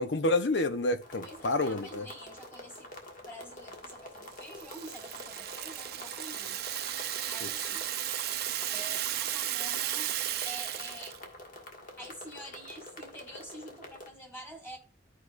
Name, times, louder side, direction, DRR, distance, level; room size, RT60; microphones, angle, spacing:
voice 1, 0.0-2.1 7.4-7.5, left 2 dB, 70° left, 0.8 m, -29 dB
sound 1, 1.0-14.1, left 1 dB, 45° left, 1.6 m, -47 dB
voice 2, 1.2-2.9 3.2-6.6 6.9-7.9 8.7-10.1 10.4-11.2 12.0-14.8, equal, 10° left, 2.0 m, -47 dB
Rattle (instrument), 4.3-11.2, right 12 dB, 55° right, 0.6 m, -35 dB
13.5 x 4.9 x 2.5 m
head